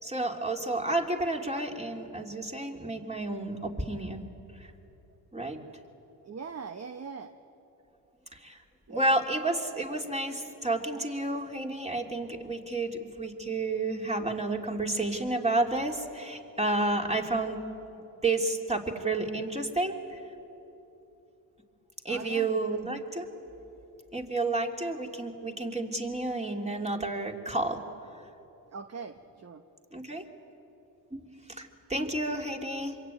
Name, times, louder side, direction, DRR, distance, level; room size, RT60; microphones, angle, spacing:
voice 1, 0.0-4.3 5.3-5.6 8.3-8.6 8.9-17.6 18.2-20.2 22.0-23.3 24.1-27.8 29.9-30.3 31.1-33.0, right 2 dB, 15° right, 2 dB, 3.2 m, -31 dB
voice 2, 6.2-7.3 8.9-9.1 22.1-22.9 28.7-29.6, right 5 dB, 35° right, 7 dB, 1.2 m, -41 dB
26.5 x 22.5 x 9.3 m, 2.9 s
supercardioid pair, 75°, 45 cm